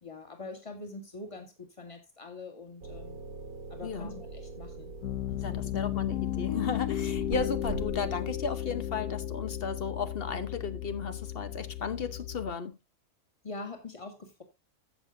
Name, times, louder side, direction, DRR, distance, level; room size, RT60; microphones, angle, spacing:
voice 1, 0.0-3.2 3.7-4.9 5.3-5.6 13.4-14.4, left 3 dB, 20° left, 2.4 m, -44 dB
sound 1, 2.8-8.4, right 3 dB, 70° right, 1.7 m, -43 dB
voice 2, 3.8-4.1 5.4-12.8, left 5 dB, 45° left, 1.1 m, -35 dB
Piano, 5.0-12.5, left 11 dB, 85° left, 1.3 m, -34 dB
13.5 x 8.3 x 2.6 m
omnidirectional pair, 1.6 m